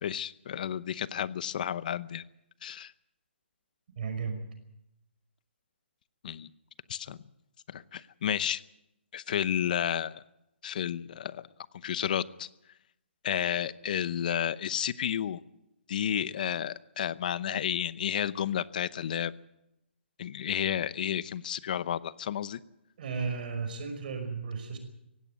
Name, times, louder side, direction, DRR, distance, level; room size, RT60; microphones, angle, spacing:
voice 1, 0.0-2.2 2.6-2.9 6.2-6.5 6.9-7.2 7.7-8.6 9.1-10.2 10.6-11.4 11.8-12.5 13.2-15.4 15.9-19.3 20.2-22.6, left 9 dB, 45° left, 18 dB, 0.8 m, -31 dB
voice 2, 4.0-4.4 23.0-24.8, right 5 dB, 45° right, 7 dB, 5.5 m, -34 dB
17.0 x 16.5 x 9.5 m, 0.85 s
hypercardioid pair, 165°, 6 cm